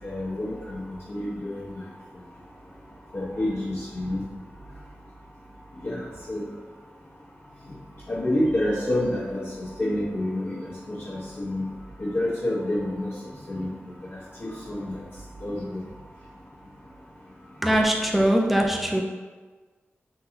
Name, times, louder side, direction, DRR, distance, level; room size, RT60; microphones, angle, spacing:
voice 1, 0.0-1.6 3.1-4.2 5.8-6.4 8.1-11.7 12.0-13.1 13.5-13.7 14.4-15.0 15.4-15.8, left 1 dB, 55° left, -10 dB, 1.1 m, -28 dB
voice 2, 17.6-19.0, right 1 dB, ahead, 1 dB, 0.4 m, -21 dB
3.8 x 2.7 x 2.8 m, 1.4 s
wide cardioid pair, 95°, 5 cm